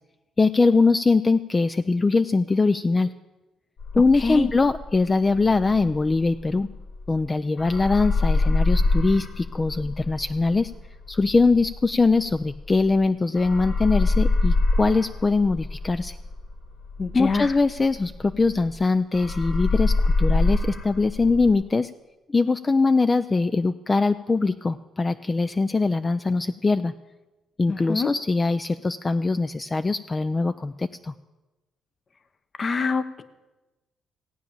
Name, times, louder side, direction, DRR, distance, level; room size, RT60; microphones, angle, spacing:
voice 1, 0.4-3.1 3.9-6.7 7.1-10.7 11.1-16.2 17.1-21.9 22.3-26.9 27.6-31.1, left 3 dB, 25° left, 11 dB, 0.4 m, -22 dB
sound 1, 3.8-7.3 7.6-13.0 13.3-18.8 19.1-21.5, left 3 dB, 75° left, 3.6 m, -25 dB
voice 2, 17.0-17.5 27.7-28.1 32.6-33.2, left 4 dB, 40° left, 12 dB, 0.9 m, -25 dB
16.5 x 8.9 x 7.1 m, 1.1 s
cardioid pair, 90°, 0 cm